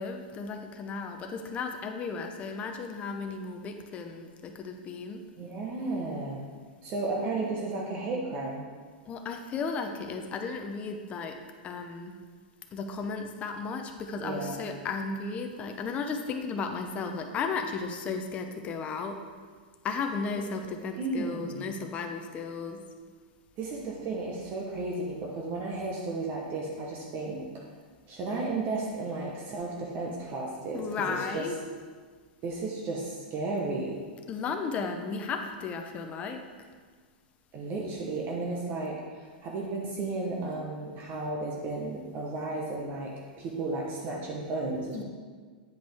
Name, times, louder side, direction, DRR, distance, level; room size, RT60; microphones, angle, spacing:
voice 1, 0.0-5.3 9.1-11.4 11.6-12.1 12.7-19.2 19.8-22.8 30.7-31.6 34.3-36.4 44.9-45.0, left 4 dB, 25° left, 4 dB, 0.6 m, -34 dB
voice 2, 5.4-6.4 6.8-8.6 14.2-14.6 20.9-21.7 23.6-27.5 28.1-31.5 32.4-34.0 37.5-45.0, right 3 dB, 35° right, -2 dB, 1.0 m, -33 dB
7.9 x 5.1 x 3.5 m, 1.6 s
hypercardioid pair, 125°, 5 cm